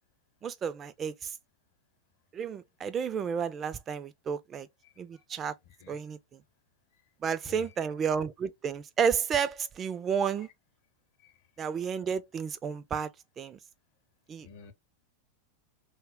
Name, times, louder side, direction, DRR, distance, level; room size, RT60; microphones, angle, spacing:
voice 1, 0.4-1.3 2.3-4.7 5.0-5.5 5.9-6.2 7.2-10.5 11.6-13.1 13.4-13.6 14.3-14.5, right 7 dB, 25° right, 0.3 m, -31 dB
voice 2, 4.8-5.2 5.6-6.1 7.4-7.9 11.2-11.4 14.4-14.7, left 6 dB, 50° left, 0.6 m, -52 dB
2.1 x 2.1 x 3.4 m
figure-of-eight pair, 90°, 0 cm